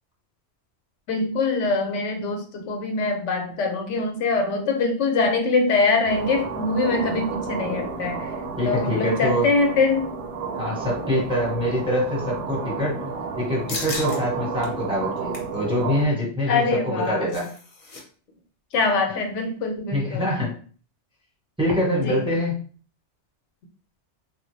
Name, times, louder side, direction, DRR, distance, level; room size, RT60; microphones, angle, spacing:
voice 1, 1.1-8.4 8.6-10.1 16.5-17.3 18.7-20.3 22.0-22.3, left 3 dB, 85° left, 4 dB, 1.0 m, -23 dB
sound 1, 6.0-16.1, right 5 dB, 60° right, 0.9 m, -31 dB
voice 2, 8.6-9.5 10.5-17.5 19.9-20.5 21.6-22.5, equal, 5° right, -4 dB, 1.1 m, -25 dB
sound 2, 13.7-14.2 14.6-14.7 15.1-15.5 16.8-18.0 18.3-18.4 18.7-19.0, left 3 dB, 45° left, 0.8 m, -35 dB
3.3 x 2.2 x 3.2 m, 0.42 s
omnidirectional pair, 1.2 m